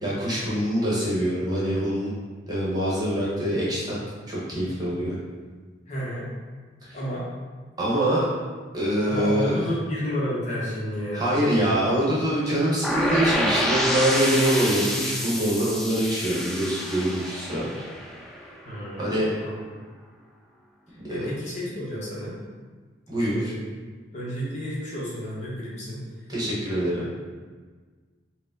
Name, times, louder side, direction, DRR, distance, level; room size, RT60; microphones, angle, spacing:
voice 1, 0.0-2.1 2.5-4.0 4.3-5.2 6.8-7.0 7.8-8.2 8.7-9.6 11.1-17.7 19.0-19.3 21.0-21.3 23.1-23.5 26.3-27.1, right 1 dB, 20° right, -7 dB, 1.0 m, -24 dB
voice 2, 5.9-6.3 6.9-7.3 9.1-11.6 18.6-19.5 21.1-22.3 23.3-23.6 24.1-26.0, equal, 40° left, -7 dB, 1.0 m, -31 dB
sound 1, 12.8-18.7, equal, ahead, 0.3 m, -28 dB
4.7 x 2.1 x 3.7 m, 1.4 s
head